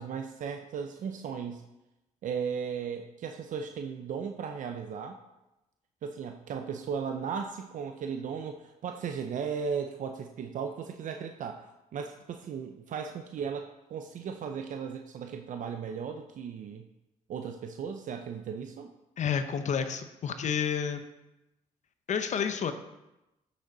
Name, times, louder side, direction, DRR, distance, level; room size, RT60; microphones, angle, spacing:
voice 1, 0.0-1.6 2.2-5.2 6.0-16.9 17.3-18.9, right 6 dB, 65° right, 5 dB, 0.6 m, -36 dB
voice 2, 19.2-21.0 22.1-22.7, left 7 dB, 60° left, 9 dB, 0.7 m, -30 dB
8.1 x 6.4 x 3.9 m, 0.95 s
cardioid pair, 75°, 14 cm